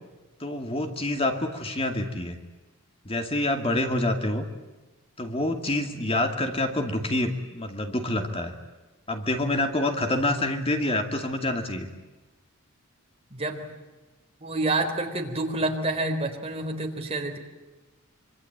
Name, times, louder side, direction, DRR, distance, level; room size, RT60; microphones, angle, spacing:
voice 1, 0.4-2.4 3.1-4.4 5.2-8.5 9.1-11.9, left 1 dB, 25° left, 5 dB, 2.4 m, -27 dB
voice 2, 13.3-13.7 14.4-17.4, right 2 dB, 30° right, 3 dB, 3.8 m, -28 dB
25.5 x 25.0 x 8.8 m, 1.2 s
head